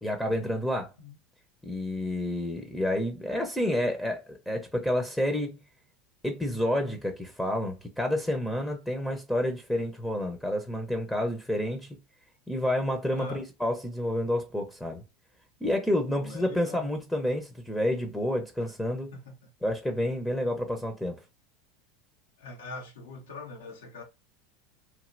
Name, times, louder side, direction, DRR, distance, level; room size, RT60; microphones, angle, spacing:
voice 1, 0.0-0.9 1.6-5.6 6.2-12.0 12.5-15.0 15.6-19.1 19.6-21.2, left 1 dB, 5° left, 0.8 m, -29 dB
voice 2, 13.1-13.4 16.2-16.9 19.1-19.3 22.4-24.0, left 2 dB, 80° left, 1.1 m, -42 dB
3.1 x 2.7 x 2.5 m
hypercardioid pair, 85°, 0 cm